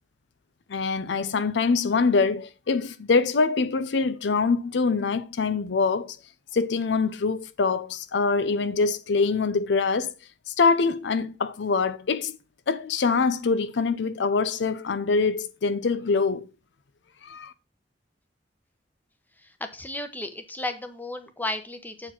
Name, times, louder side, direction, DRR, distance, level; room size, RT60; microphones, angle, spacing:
voice 1, 0.7-6.2 6.5-10.1 10.5-12.4 12.7-16.5 17.2-17.5, left 4 dB, 75° left, 0.5 m, -24 dB
voice 2, 19.4-22.1, left 2 dB, 10° left, 1.0 m, -34 dB
7.6 x 4.8 x 5.7 m
head